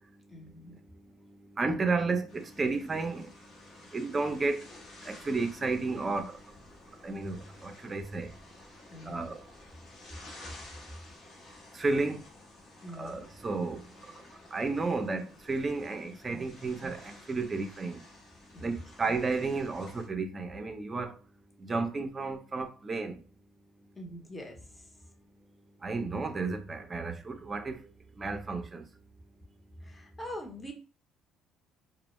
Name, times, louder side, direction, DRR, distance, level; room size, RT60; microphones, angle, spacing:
voice 1, 0.3-0.8 8.9-9.3 12.8-13.2 18.5-18.7 19.0-19.2 23.9-25.1 29.8-30.7, equal, 20° left, 0.8 m, -44 dB
voice 2, 1.6-3.3 3.9-4.6 5.1-6.3 7.0-8.3 9.1-9.4 11.8-12.2 13.0-13.8 14.5-18.0 18.6-21.1 21.6-23.2 25.8-27.7 28.2-28.8, right 3 dB, 30° right, 0.5 m, -32 dB
sound 1, 2.3-20.1, left 2 dB, 55° left, 0.8 m, -53 dB
2.1 x 2.1 x 3.0 m
supercardioid pair, 80°, 0 cm